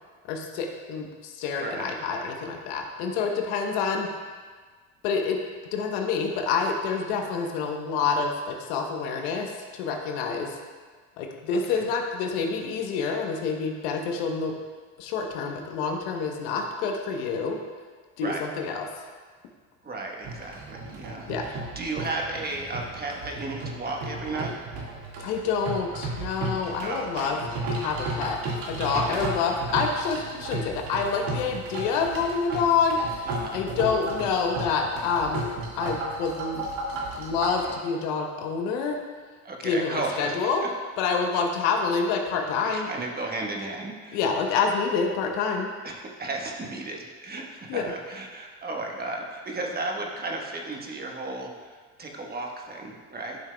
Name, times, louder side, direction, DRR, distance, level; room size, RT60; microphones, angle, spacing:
voice 1, 0.3-4.1 5.0-5.4 5.7-10.6 11.2-14.5 15.0-17.6 18.2-18.9 21.3-21.5 25.2-27.4 27.7-28.4 28.7-35.5 35.8-36.6 37.2-39.0 39.6-40.6 41.0-42.9 44.1-45.7 47.7-47.9, left 5 dB, 80° left, 3 dB, 1.1 m, -27 dB
voice 2, 1.6-2.0 11.7-11.8 18.2-18.5 19.8-24.5 26.8-27.4 28.9-29.2 33.3-33.6 39.4-40.4 40.6-40.7 41.3-41.4 42.7-44.2 45.8-53.4, right 2 dB, 25° right, 0 dB, 1.3 m, -34 dB
sound 1, 20.2-37.7, right 2 dB, 75° right, 2.0 m, -34 dB
11.5 x 6.1 x 2.3 m, 1.5 s
supercardioid pair, 90°, 35 cm